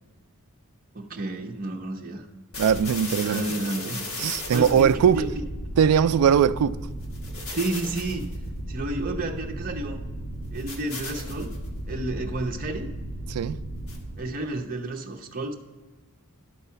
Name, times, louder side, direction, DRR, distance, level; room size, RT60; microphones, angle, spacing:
voice 1, 0.9-2.3 3.2-5.3 7.5-8.3 8.7-10.0 10.5-11.5 11.9-12.9 14.2-15.5, right 2 dB, 40° right, 0.7 m, -31 dB
sound 1, 2.5-14.3, equal, 65° left, 1.6 m, -35 dB
voice 2, 2.6-3.4 4.2-5.2 5.8-6.8 13.3-13.6, right 8 dB, 75° right, 0.3 m, -20 dB
11.0 x 4.1 x 5.6 m
head